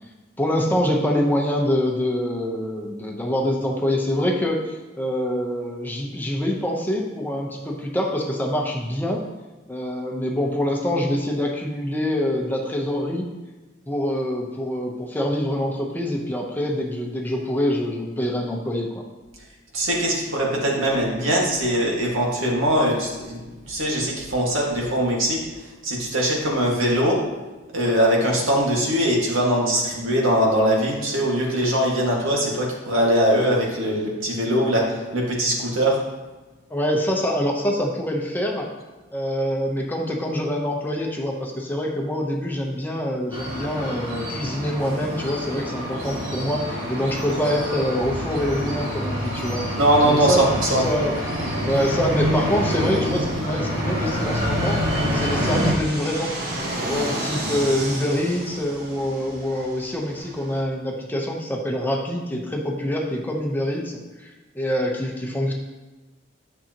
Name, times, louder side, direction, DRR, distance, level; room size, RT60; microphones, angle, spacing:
voice 1, 0.4-9.2 9.7-13.3 13.9-19.1 36.7-38.7 39.1-49.6 50.0-50.5 50.7-51.1 51.6-56.4 56.8-65.5, equal, 10° left, -1 dB, 0.9 m, -25 dB
voice 2, 19.7-23.4 23.7-25.4 25.8-27.2 27.7-36.0 49.7-50.8, equal, 85° right, -2 dB, 1.9 m, -21 dB
sound 1, 43.3-55.7, equal, 65° right, 2.0 m, -27 dB
Fixed-wing aircraft airplane, 51.4-60.6, right 1 dB, 50° right, 1.5 m, -34 dB
10.0 x 6.5 x 2.9 m, 1.2 s
head